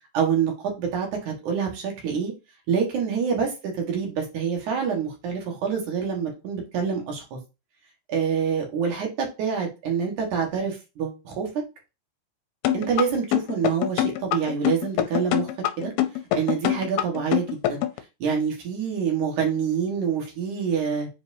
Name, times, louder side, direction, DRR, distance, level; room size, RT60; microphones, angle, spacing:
voice 1, 0.1-2.3 2.7-7.4 8.1-11.5 12.7-15.5 15.8-15.9 16.4-17.8 18.2-21.1, right 6 dB, 55° right, 1 dB, 2.8 m, -26 dB
sound 1, 12.7-18.0, left 12 dB, 80° left, 2.6 m, -24 dB
7.5 x 4.7 x 2.8 m, 0.27 s
omnidirectional pair, 4.7 m